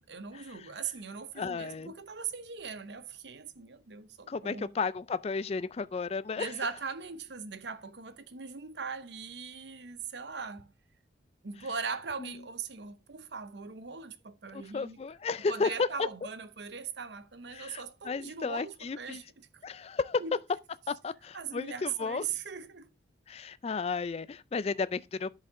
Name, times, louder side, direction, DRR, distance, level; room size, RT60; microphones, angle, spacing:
voice 1, 0.1-4.7 6.4-10.7 11.4-15.0 15.5-19.2 19.5-19.6 20.2-20.4 21.3-22.9, right 5 dB, 75° right, 0.8 m, -40 dB
voice 2, 1.4-1.9 4.3-6.6 12.2-12.4 14.5-15.9 17.5-19.2 19.6-20.2 20.9-22.2 23.3-25.4, left 4 dB, 35° left, 0.3 m, -33 dB
10.5 x 5.3 x 3.6 m
head